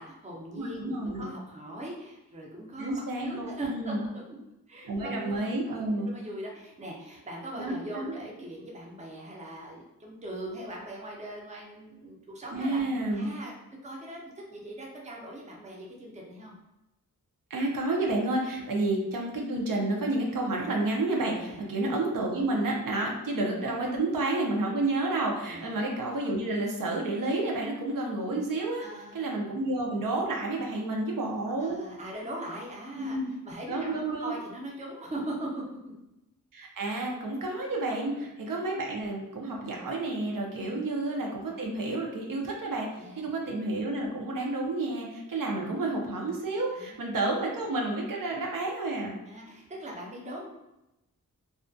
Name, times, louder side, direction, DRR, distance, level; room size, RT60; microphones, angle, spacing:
voice 1, 0.0-4.4 4.7-5.3 5.7-12.8 13.1-13.5 13.8-16.5 18.5-18.7 21.5-21.6 25.5-25.8 28.8-29.2 31.6-35.9 38.1-38.2 40.6-40.8 43.0-43.3 46.8-47.0 49.3-50.5, right 1 dB, 20° right, -2 dB, 0.5 m, -40 dB
voice 2, 0.5-1.3 2.8-4.0 4.8-6.1 7.6-8.1 12.5-13.3 17.5-28.8 29.1-31.8 33.0-33.3 33.7-34.4 36.5-49.2, right 2 dB, 75° right, -1 dB, 0.5 m, -30 dB
2.3 x 2.1 x 2.5 m, 0.92 s
wide cardioid pair, 95°, 33 cm